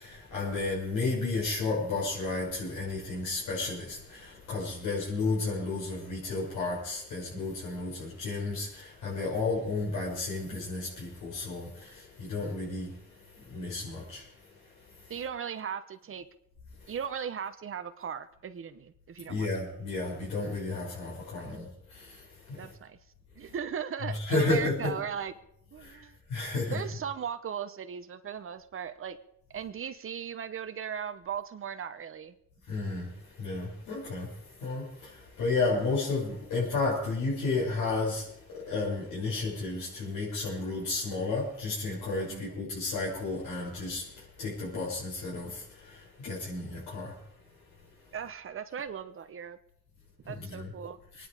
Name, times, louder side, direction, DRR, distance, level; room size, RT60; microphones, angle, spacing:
voice 1, 0.3-4.0 4.5-8.7 9.0-11.7 12.2-12.9 13.5-14.2 19.3-21.6 24.1-24.9 26.3-26.8 32.7-33.0 33.4-34.3 34.6-34.8 35.4-38.2 38.7-42.3 42.6-44.0 44.4-45.5 46.2-47.1 50.5-50.7, left 3 dB, 85° left, -7 dB, 6.3 m, -31 dB
voice 2, 15.1-16.3 16.9-19.5 21.3-21.5 22.6-23.0 23.4-25.3 25.7-26.2 26.7-29.2 29.5-32.3 42.3-42.8 48.1-49.6 50.2-51.0, right 7 dB, 45° right, 9 dB, 0.9 m, -38 dB
24.0 x 10.0 x 4.9 m, 0.76 s
cardioid pair, 125°, 30 cm